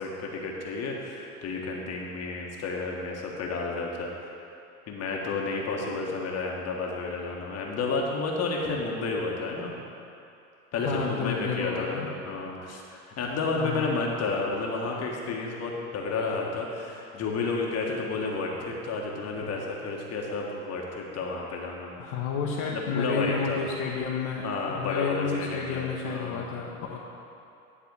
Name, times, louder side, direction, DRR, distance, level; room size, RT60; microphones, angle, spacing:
voice 1, 0.0-4.3 4.9-9.8 10.7-21.9 22.7-23.6 24.4-26.5, left 3 dB, 35° left, -1 dB, 1.4 m, -31 dB
voice 2, 10.8-12.1 13.6-13.9 22.0-27.0, left 5 dB, 50° left, -3 dB, 1.1 m, -31 dB
11.0 x 4.1 x 7.2 m, 2.7 s
hypercardioid pair, 85°, 44 cm